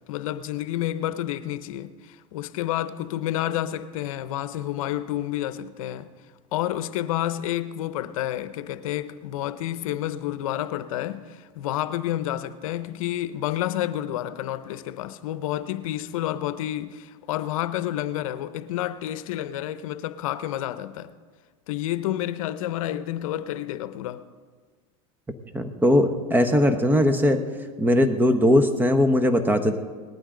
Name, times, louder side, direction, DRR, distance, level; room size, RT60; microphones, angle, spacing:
voice 1, 0.1-6.1 6.5-21.1 21.7-24.2, left 13 dB, 80° left, 0.7 m, -29 dB
voice 2, 25.5-27.4 27.8-29.8, left 1 dB, 10° right, 1.0 m, -20 dB
19.0 x 12.5 x 3.8 m
supercardioid pair, 115°, 17 cm